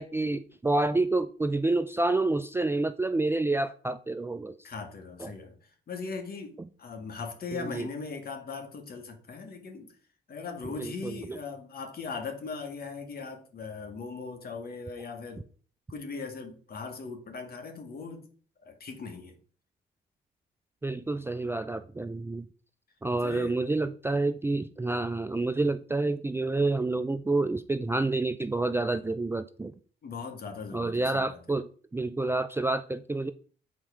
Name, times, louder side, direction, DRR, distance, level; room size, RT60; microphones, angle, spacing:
voice 1, 0.0-4.6 5.2-5.3 7.5-7.9 10.8-11.4 20.8-22.5 23.0-29.7 30.7-33.3, right 2 dB, 10° right, 0.4 m, -28 dB
voice 2, 4.6-5.6 5.9-9.9 10.3-15.4 15.9-18.3 18.6-19.3 23.2-23.6 30.0-31.4, left 4 dB, 50° left, 1.8 m, -39 dB
7.3 x 4.3 x 4.9 m
cardioid pair, 90°, 20 cm